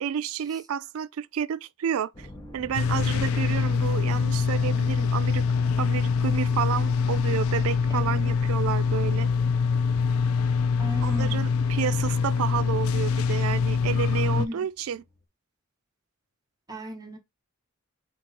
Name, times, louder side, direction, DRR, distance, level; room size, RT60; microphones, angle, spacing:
voice 1, 0.0-2.3 2.5-5.4 5.8-9.3 11.0-15.0, right 8 dB, 80° right, 0.3 m, -30 dB
sound 1, 2.7-14.5, left 5 dB, 85° left, 0.4 m, -24 dB
voice 2, 10.8-11.5 14.3-14.6 16.7-17.2, equal, 20° right, 0.8 m, -36 dB
sound 2, 14.7-15.2, left 1 dB, 15° left, 0.8 m, -48 dB
4.0 x 2.9 x 3.7 m
head